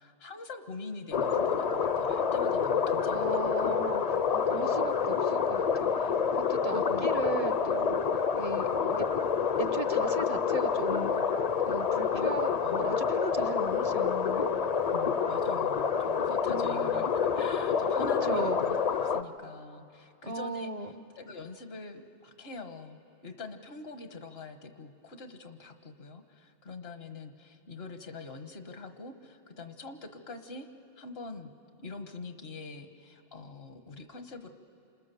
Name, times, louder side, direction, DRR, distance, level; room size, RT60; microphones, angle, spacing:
voice 1, 0.0-3.9 4.5-4.9 6.7-7.3 12.1-12.3 12.6-13.0 14.9-30.7 31.0-31.5 31.8-34.5, left 3 dB, 75° left, 7 dB, 1.5 m, -44 dB
sound 1, 1.1-19.2, left 6 dB, 45° left, 0.7 m, -28 dB
voice 2, 3.1-9.1 9.6-14.5 16.5-17.0 18.2-18.6 20.2-20.9, right 3 dB, 40° right, 9 dB, 0.8 m, -37 dB
28.0 x 27.0 x 6.9 m, 2.7 s
omnidirectional pair, 1.0 m